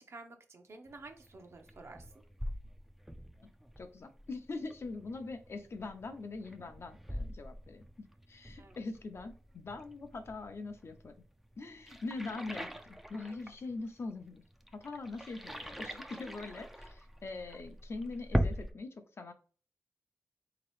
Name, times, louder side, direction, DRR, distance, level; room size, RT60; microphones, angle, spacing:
voice 1, 0.0-2.2 8.6-8.8, right 3 dB, 55° right, 4 dB, 0.7 m, -51 dB
sound 1, 0.9-18.7, equal, 5° right, 0.4 m, -42 dB
voice 2, 3.8-7.8 8.3-11.1 11.6-14.4 14.7-19.3, left 3 dB, 50° left, 7 dB, 0.6 m, -42 dB
3.9 x 2.9 x 3.1 m, 0.39 s
wide cardioid pair, 115°, 5 cm